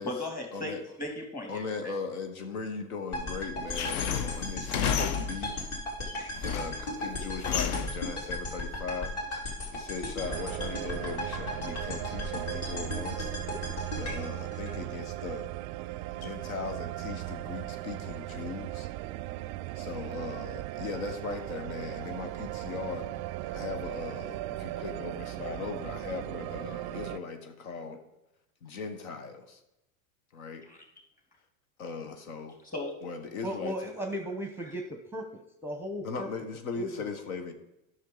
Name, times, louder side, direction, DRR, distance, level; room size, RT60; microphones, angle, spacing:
voice 1, 0.0-1.9 30.7-30.8 32.6-32.9, left 1 dB, 20° left, 0 dB, 2.5 m, -37 dB
voice 2, 1.5-5.6 6.4-9.1 9.7-13.3 13.9-15.5 16.1-18.9 19.7-23.1 23.5-28.0 28.6-29.6 30.3-30.6 31.8-32.6 33.0-33.8 36.0-37.5, left 4 dB, 80° left, 6 dB, 1.2 m, -38 dB
sound 1, 3.1-15.3, left 1 dB, 45° left, 2.8 m, -36 dB
sound 2, 3.7-5.6 6.1-6.9 7.4-8.1, left 8 dB, 60° left, 0.8 m, -31 dB
sound 3, 10.2-27.2, right 16 dB, 45° right, 0.4 m, -37 dB
voice 3, 33.4-34.8 35.1-35.2 35.6-36.3 36.7-37.2, equal, 5° right, 4 dB, 0.8 m, -35 dB
10.5 x 6.2 x 3.9 m, 0.88 s
hypercardioid pair, 105°, 42 cm